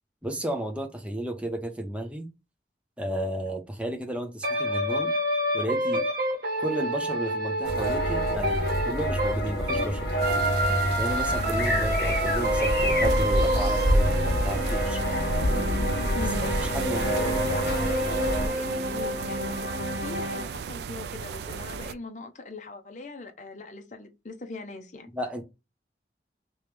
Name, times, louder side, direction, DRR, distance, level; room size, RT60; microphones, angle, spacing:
voice 1, 0.2-2.3 3.0-5.1 5.5-6.0 6.6-10.1 11.0-15.0 16.6-17.4 25.1-25.4, right 1 dB, 5° right, 0.7 m, -33 dB
sound 1, 4.4-9.9 10.2-20.4, equal, 55° right, 1.2 m, -29 dB
sound 2, 7.6-18.5, equal, 65° left, 1.3 m, -27 dB
sound 3, 10.2-21.9, right 6 dB, 70° right, 0.3 m, -37 dB
voice 2, 16.1-16.5 17.1-25.1, left 3 dB, 45° left, 0.7 m, -40 dB
3.1 x 3.0 x 3.3 m
head